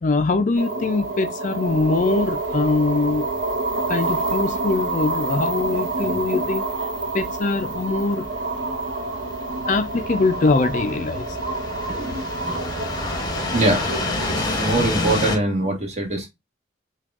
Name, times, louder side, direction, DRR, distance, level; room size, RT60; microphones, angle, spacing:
voice 1, 0.0-3.3 3.9-6.7 7.1-8.3 9.7-11.4, left 3 dB, 40° left, 0.4 m, -22 dB
sound 1, 0.6-15.1, right 3 dB, 75° right, 0.8 m, -28 dB
sound 2, 1.6-15.4, left 2 dB, 20° left, 0.8 m, -30 dB
voice 2, 13.5-16.3, right 2 dB, 35° right, 1.3 m, -23 dB
5.9 x 2.3 x 2.3 m
head